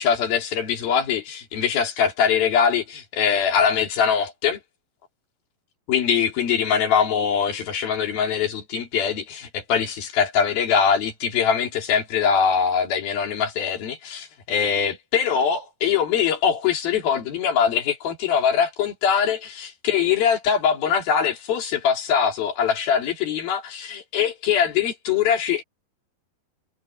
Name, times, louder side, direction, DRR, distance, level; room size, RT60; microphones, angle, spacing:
voice 1, 0.0-4.6 5.9-25.6, left 7 dB, 65° left, 4.7 m, -22 dB
omnidirectional pair, 4.6 m